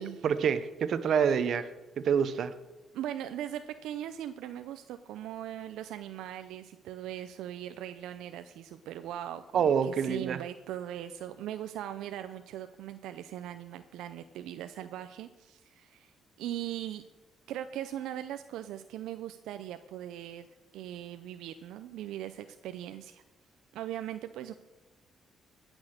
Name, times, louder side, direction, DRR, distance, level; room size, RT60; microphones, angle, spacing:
voice 1, 0.2-1.7 2.0-2.5 9.5-10.4, right 7 dB, 65° right, 13 dB, 0.9 m, -27 dB
voice 2, 2.9-16.1 16.4-17.0 17.5-20.5 20.7-23.2 23.7-24.5, right 11 dB, 90° right, 9 dB, 0.5 m, -40 dB
17.5 x 6.2 x 6.5 m, 1.2 s
cardioid pair, 90°, 0 cm